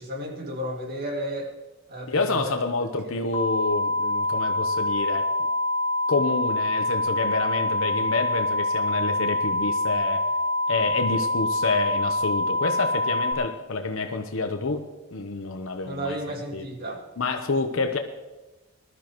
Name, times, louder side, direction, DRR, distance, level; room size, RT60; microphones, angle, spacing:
voice 1, 0.0-1.5 1.9-2.5 3.0-3.1 15.8-17.0, equal, 45° right, 1 dB, 2.3 m, -33 dB
voice 2, 2.1-5.3 6.1-10.3 10.7-16.2 16.5-16.7 17.2-18.0, left 3 dB, 70° left, 5 dB, 0.9 m, -28 dB
sound 1, 3.3-13.3, left 1 dB, 30° left, 2.1 m, -25 dB
20.0 x 12.5 x 3.1 m, 1.1 s
head